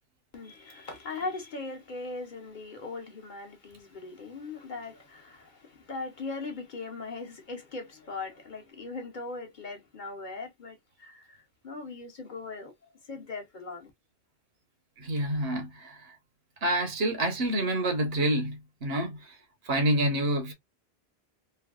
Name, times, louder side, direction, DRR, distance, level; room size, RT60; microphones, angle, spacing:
voice 1, 0.3-12.7 13.1-13.9, left 3 dB, 50° left, 0.9 m, -39 dB
voice 2, 15.0-16.1 16.6-19.4 19.6-20.5, right 1 dB, 65° right, 1.2 m, -28 dB
3.3 x 2.2 x 2.3 m
omnidirectional pair, 1.1 m